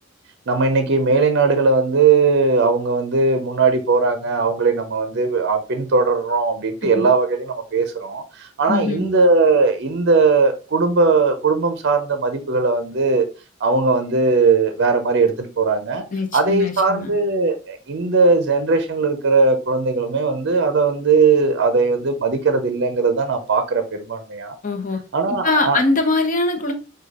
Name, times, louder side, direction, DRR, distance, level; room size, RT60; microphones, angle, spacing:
voice 1, 0.5-13.3 13.6-16.0 16.3-24.6 25.1-25.8, right 4 dB, 55° right, 0.5 m, -19 dB
voice 2, 8.7-9.0 16.1-17.1 24.6-25.0 25.4-26.7, left 3 dB, 40° left, 0.7 m, -21 dB
4.9 x 2.3 x 3.5 m
head